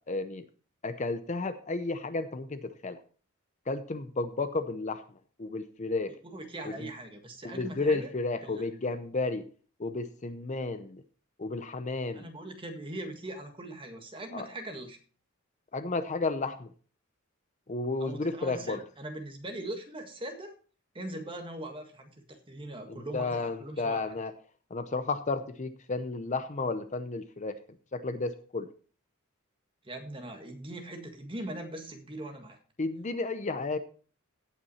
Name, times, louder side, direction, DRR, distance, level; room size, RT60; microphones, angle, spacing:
voice 1, 0.1-0.4 0.8-3.0 3.7-5.0 5.4-6.2 6.6-6.9 7.4-9.5 9.8-11.0 11.4-12.3 14.3-14.5 15.7-16.7 17.7-18.8 22.9-24.3 24.7-27.6 27.9-28.7 32.8-33.8, left 3 dB, 35° left, 11 dB, 0.6 m, -32 dB
voice 2, 6.2-8.1 8.4-8.6 12.1-15.0 18.0-20.5 20.9-24.1 29.8-32.6, right 1 dB, 25° right, 4 dB, 1.7 m, -41 dB
16.5 x 6.0 x 4.1 m, 0.40 s
head